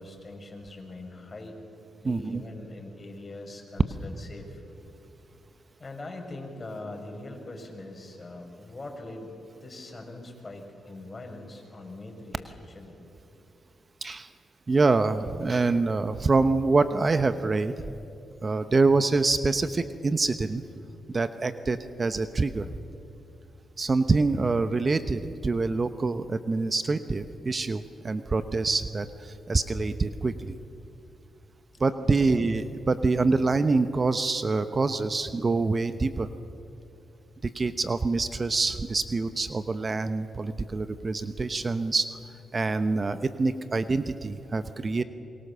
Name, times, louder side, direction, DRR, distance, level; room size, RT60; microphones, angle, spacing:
voice 1, 0.0-1.6 2.0-4.6 5.8-9.3 9.6-13.0 32.1-32.4, left 2 dB, 35° left, 3 dB, 5.7 m, -42 dB
voice 2, 2.0-2.4 14.0-14.3 14.7-17.7 18.4-20.6 21.1-22.7 23.8-30.5 31.8-36.3 37.4-42.1 42.5-45.0, right 3 dB, 40° right, 11 dB, 1.0 m, -25 dB
27.0 x 22.5 x 7.0 m, 2.6 s
supercardioid pair, 55°, 0 cm